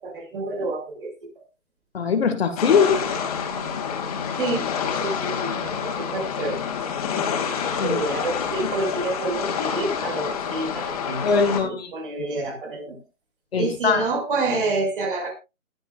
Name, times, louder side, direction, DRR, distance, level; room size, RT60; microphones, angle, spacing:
voice 1, 0.0-1.1 4.4-4.7 4.9-6.6 7.8-13.0 13.6-15.3, right 3 dB, 40° right, 2 dB, 6.0 m, -28 dB
voice 2, 1.9-3.0 7.8-8.0 11.2-11.9 13.5-14.1, left 5 dB, 45° left, 7 dB, 2.1 m, -21 dB
sound 1, 2.6-11.6, left 7 dB, 25° left, 2.7 m, -28 dB
20.5 x 6.9 x 2.5 m, 0.26 s
figure-of-eight pair, 150°, 41 cm